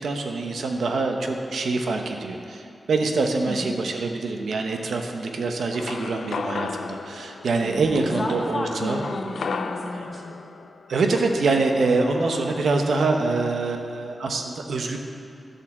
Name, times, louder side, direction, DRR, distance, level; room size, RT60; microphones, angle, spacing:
voice 1, 0.0-9.0 10.9-15.0, right 3 dB, 85° right, 3 dB, 0.9 m, -25 dB
sound 1, 5.7-12.6, left 5 dB, 75° left, 0.4 m, -35 dB
voice 2, 7.6-10.3, left 1 dB, 30° left, 0 dB, 1.2 m, -32 dB
12.0 x 5.6 x 7.2 m, 2.5 s
wide cardioid pair, 170°, 0 cm